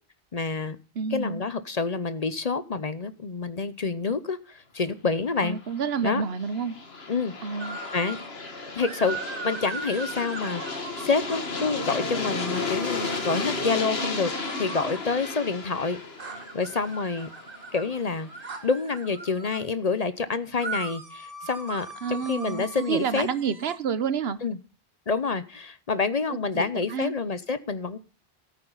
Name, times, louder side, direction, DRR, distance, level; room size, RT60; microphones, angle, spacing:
voice 1, 0.3-0.8 1.1-5.6 6.0-6.2 7.1-7.3 7.9-8.2 8.7-9.2 9.4-14.3 14.6-16.0 16.3-17.3 17.7-18.3 18.6-23.3 24.4-24.6 25.1-28.0, left 4 dB, 45° left, 13 dB, 0.8 m, -28 dB
voice 2, 1.0-1.4 5.4-6.7 7.4-7.8 22.0-24.4 26.3-26.6 26.9-27.1, right 6 dB, 75° right, 15 dB, 1.1 m, -29 dB
Aircraft, 5.6-18.4, left 3 dB, 80° left, 1.9 m, -34 dB
sound 1, 7.6-8.3 8.8-11.6 12.3-15.0 16.2-19.6 20.6-23.8, right 3 dB, 60° right, 1.8 m, -39 dB
14.0 x 9.1 x 3.9 m, 0.34 s
omnidirectional pair, 1.0 m